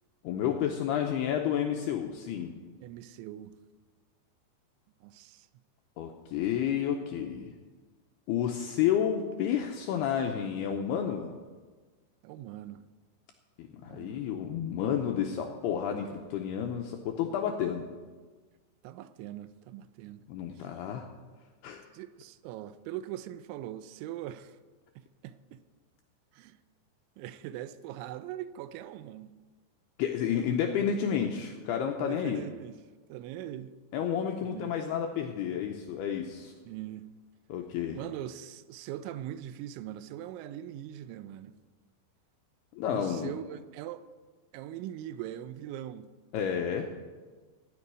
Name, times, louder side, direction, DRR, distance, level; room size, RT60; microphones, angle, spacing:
voice 1, 0.2-2.5 6.0-7.5 8.3-11.3 13.6-17.8 20.3-21.0 21.6-21.8 30.0-32.4 33.9-36.5 37.5-38.0 42.7-43.3 46.3-46.9, left 9 dB, 90° left, 2.3 m, -30 dB
voice 2, 2.8-3.5 5.0-5.5 12.2-12.8 13.8-14.3 18.8-20.2 20.6-20.7 21.9-24.6 25.0-25.6 26.3-26.6 27.2-29.3 30.3-30.6 32.0-32.7 33.1-33.7 34.4-34.7 36.7-37.1 37.9-41.5 42.9-44.1 44.5-46.1, right 12 dB, 85° right, 2.9 m, -41 dB
15.0 x 5.3 x 9.7 m
omnidirectional pair, 5.4 m